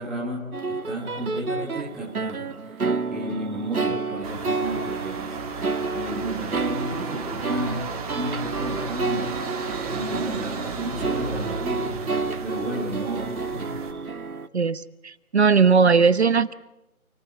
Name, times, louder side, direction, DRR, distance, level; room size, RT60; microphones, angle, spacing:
voice 1, 0.0-2.9 3.1-5.4 5.9-9.4 9.8-13.7, right 1 dB, ahead, -5 dB, 1.2 m, -33 dB
sound 1, 0.5-14.5, right 4 dB, 85° right, 1.6 m, -30 dB
sound 2, 4.2-13.9, right 4 dB, 25° right, 3.4 m, -34 dB
voice 2, 14.5-16.5, right 5 dB, 50° right, 15 dB, 1.1 m, -19 dB
29.0 x 19.5 x 9.5 m, 0.90 s
figure-of-eight pair, 165°, 43 cm